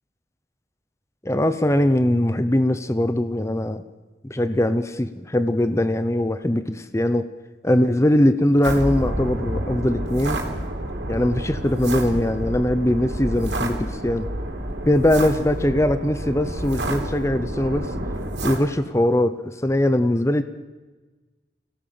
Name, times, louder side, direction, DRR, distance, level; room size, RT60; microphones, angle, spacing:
voice 1, 1.2-3.8 4.2-7.3 7.6-10.4 11.1-14.3 14.8-17.9 18.4-20.4, left 1 dB, 15° left, 11 dB, 0.8 m, -21 dB
sound 1, 8.6-18.6, right 1 dB, 85° right, 3.6 m, -29 dB
24.0 x 17.5 x 7.8 m, 1.3 s
head